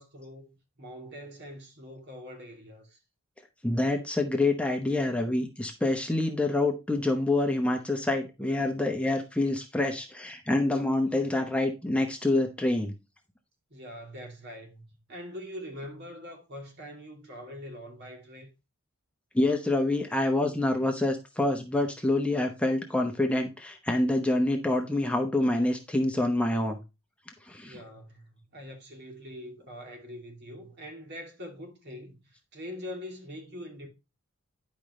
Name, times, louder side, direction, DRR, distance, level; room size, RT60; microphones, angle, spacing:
voice 1, 0.0-3.0 13.7-18.5 27.6-33.9, equal, 55° right, 2.5 m, -43 dB
voice 2, 3.6-12.9 19.3-26.8 27.5-27.8, left 2 dB, 5° left, 0.9 m, -27 dB
10.5 x 5.1 x 3.1 m
head